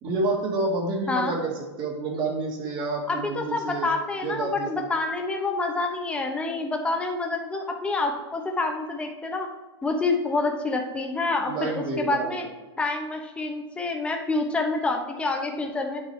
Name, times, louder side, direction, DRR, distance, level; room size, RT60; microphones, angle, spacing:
voice 1, 0.0-3.9 4.2-4.9 11.4-12.3, right 2 dB, 30° right, 1 dB, 1.6 m, -29 dB
voice 2, 3.1-9.5 9.8-12.4 12.8-16.0, left 3 dB, 10° left, 3 dB, 0.8 m, -27 dB
9.8 x 6.3 x 3.3 m, 1.2 s
supercardioid pair, 145°, 15 cm